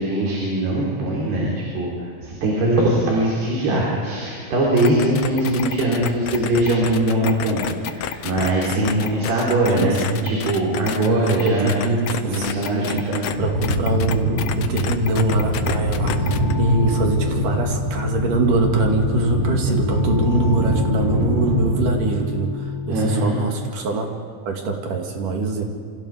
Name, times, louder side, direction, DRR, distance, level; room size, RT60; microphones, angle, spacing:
voice 1, 0.0-1.9 2.2-7.6 7.9-11.7 12.2-13.2 22.9-23.4, right 1 dB, 80° right, -4 dB, 5.9 m, -21 dB
sound 1, 4.8-13.3 13.6-16.5, left 9 dB, 75° left, 1.6 m, -29 dB
voice 2, 8.8-9.2 9.8-10.3 11.1-13.0 13.4-24.1 24.5-25.6, right 2 dB, 60° right, 2 dB, 3.7 m, -23 dB
sound 2, 13.3-22.0, right 1 dB, 35° right, 5.7 m, -24 dB
sound 3, 15.9-23.3, left 5 dB, 5° right, 5.1 m, -30 dB
28.0 x 28.0 x 5.0 m, 2.2 s
omnidirectional pair, 4.5 m